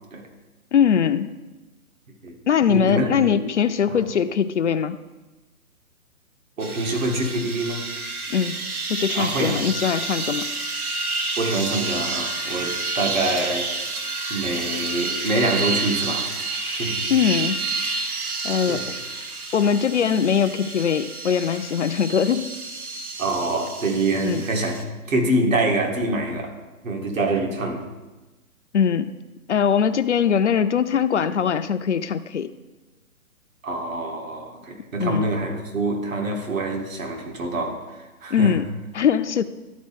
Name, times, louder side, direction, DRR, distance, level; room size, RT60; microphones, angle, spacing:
voice 1, 0.7-1.3 2.5-5.0 8.3-8.6 8.9-10.5 17.1-17.6 18.4-18.8 19.5-22.5 24.2-24.4 28.7-29.2 29.5-32.5 35.0-35.2 38.3-38.7 38.9-39.4, left 7 dB, 55° left, 10 dB, 0.5 m, -21 dB
voice 2, 2.7-3.4 3.9-4.1 6.6-7.9 9.2-9.6 11.4-13.7 14.3-16.3 16.6-17.1 18.5-18.9 23.2-24.8 25.1-26.5 26.8-27.8 33.6-38.6, right 2 dB, 60° right, 1 dB, 2.0 m, -25 dB
sound 1, 6.6-24.8, right 3 dB, 80° right, 1.2 m, -29 dB
13.0 x 4.4 x 4.3 m, 1.1 s
figure-of-eight pair, 140°, 44 cm